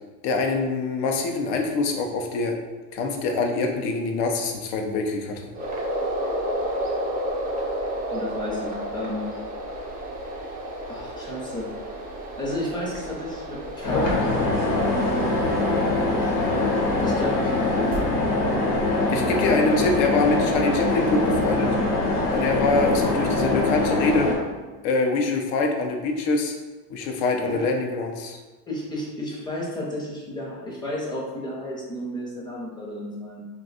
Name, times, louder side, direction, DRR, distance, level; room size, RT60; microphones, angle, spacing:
voice 1, 0.2-2.6 2.9-5.5 19.1-21.7 22.3-24.3 24.8-26.5 26.9-28.4, left 3 dB, 55° left, 3 dB, 0.7 m, -24 dB
sound 1, 5.5-18.0, right 1 dB, 20° right, 0.3 m, -32 dB
voice 2, 8.1-9.3 10.9-11.7 12.4-14.2 14.7-15.8 17.0-17.9 27.0-27.7 28.7-33.5, equal, 10° left, -5 dB, 0.7 m, -32 dB
sound 2, 13.8-24.3, left 2 dB, 85° left, 1.2 m, -23 dB
2.6 x 2.3 x 4.0 m, 1.2 s
supercardioid pair, 120°, 49 cm